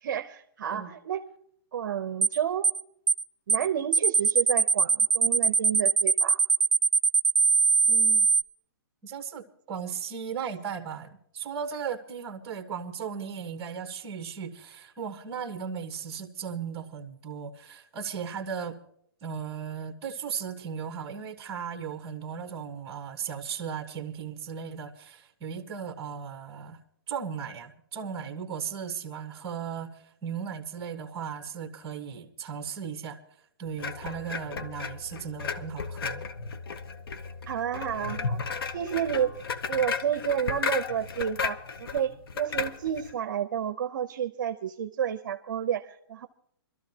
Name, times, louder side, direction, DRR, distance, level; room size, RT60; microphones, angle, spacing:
voice 1, 0.0-1.2 1.7-2.7 3.5-6.4 37.5-38.4 38.7-39.3 39.7-46.3, right 9 dB, 50° right, 0.8 m, -30 dB
sound 1, 2.2-2.4 2.6-2.8 3.1-3.2 3.5-3.7 3.9-8.4, right 6 dB, 85° right, 0.5 m, -21 dB
voice 2, 7.8-8.3 9.0-18.8 19.2-26.8 27.1-33.2 33.6-36.2, right 7 dB, 20° right, 1.3 m, -36 dB
sound 2, 33.8-43.1, left 5 dB, 70° left, 1.0 m, -34 dB
25.0 x 13.0 x 2.9 m
hypercardioid pair, 170°, 13 cm